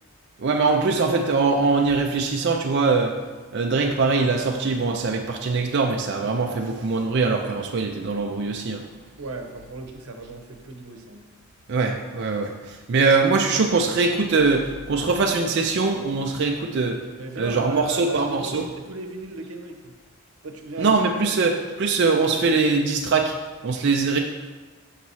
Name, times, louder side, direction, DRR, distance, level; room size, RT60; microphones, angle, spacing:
voice 1, 0.4-3.1 3.5-8.8 11.7-17.0 17.3-18.6 20.8-23.4 23.6-24.2, right 4 dB, 55° right, 1 dB, 0.5 m, -22 dB
voice 2, 9.2-11.2 17.2-19.9 20.4-20.9 21.3-21.4, right 2 dB, 85° right, 4 dB, 0.9 m, -35 dB
5.9 x 4.1 x 6.1 m, 1.3 s
head